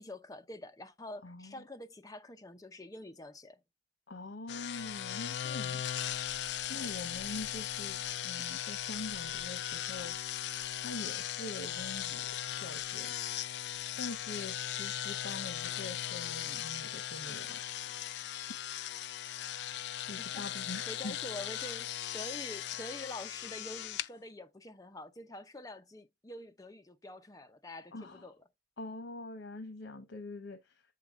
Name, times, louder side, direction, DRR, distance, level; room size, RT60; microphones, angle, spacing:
voice 1, 0.0-3.6 20.2-20.4 20.9-28.4, left 1 dB, 20° left, 0.7 m, -46 dB
voice 2, 1.2-1.6 4.1-5.8 6.7-10.1 10.8-12.3 12.6-13.1 14.0-18.2 19.3-19.7 20.0-21.2 27.9-28.3 28.8-30.8, left 2 dB, 90° left, 0.8 m, -44 dB
sound 1, 4.5-24.1, left 11 dB, 75° left, 0.4 m, -38 dB
7.7 x 4.0 x 3.6 m
head